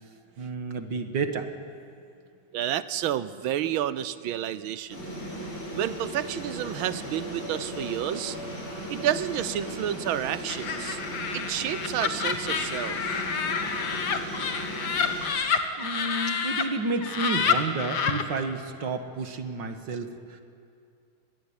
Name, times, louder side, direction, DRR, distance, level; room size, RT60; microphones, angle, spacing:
voice 1, 0.4-1.5 13.5-13.8 15.8-20.4, right 3 dB, 60° right, 7 dB, 2.2 m, -31 dB
voice 2, 2.5-5.0 5.7-8.4 8.9-11.0 11.3-13.0, right 11 dB, 75° right, 15 dB, 1.6 m, -30 dB
sound 1, 4.9-15.3, equal, 85° left, 7.8 m, -37 dB
Laughter, 10.5-16.6 17.0-18.2, left 6 dB, 55° left, 1.9 m, -28 dB
25.5 x 21.0 x 8.9 m, 2.5 s
omnidirectional pair, 2.3 m